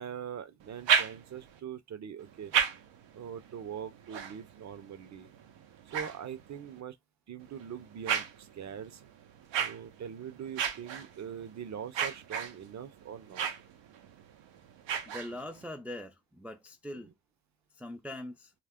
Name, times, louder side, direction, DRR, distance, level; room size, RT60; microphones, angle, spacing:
voice 1, 0.0-2.5 3.1-5.3 5.9-7.0 7.3-9.0 9.6-13.5 16.9-17.1, right 8 dB, 40° right, 0.6 m, -42 dB
sound 1, 0.6-1.6 2.2-6.8 7.4-15.7, right 7 dB, 85° right, 0.8 m, -35 dB
voice 2, 15.1-17.1 17.8-18.5, left 1 dB, 5° right, 0.4 m, -42 dB
2.4 x 2.0 x 3.5 m
cardioid pair, 65°, 43 cm